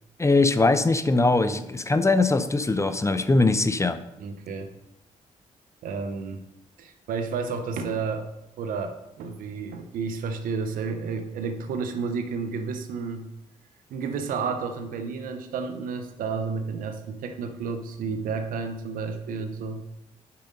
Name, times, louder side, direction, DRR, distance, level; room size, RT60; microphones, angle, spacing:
voice 1, 0.2-4.0, left 3 dB, 20° left, 12 dB, 0.6 m, -21 dB
voice 2, 4.2-4.7 5.8-6.4 6.8-8.2 8.6-13.3 13.9-19.8, right 5 dB, 90° right, 7 dB, 0.8 m, -31 dB
5.7 x 5.1 x 6.4 m, 0.87 s
cardioid pair, 60°, 14 cm